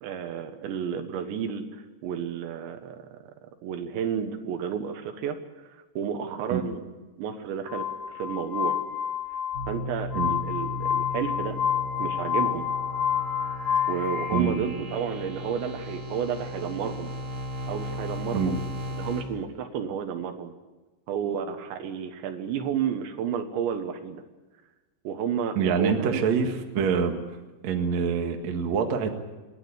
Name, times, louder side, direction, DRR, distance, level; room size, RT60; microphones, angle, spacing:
voice 1, 0.0-3.2 3.6-6.8 7.2-8.8 9.7-11.6 12.0-12.7 13.9-17.1 17.7-18.7 18.9-20.5 21.1-24.2 25.1-26.2, right 8 dB, 75° right, 7 dB, 3.5 m, -31 dB
Glass, 7.7-14.4, left 8 dB, 85° left, 1.0 m, -28 dB
sound 1, 9.5-19.2, left 1 dB, 35° right, 3.1 m, -36 dB
voice 2, 14.3-14.6 18.3-18.6 25.6-27.2 27.6-29.1, right 6 dB, 50° right, 4 dB, 2.2 m, -25 dB
27.5 x 12.0 x 9.9 m, 1.2 s
omnidirectional pair, 5.4 m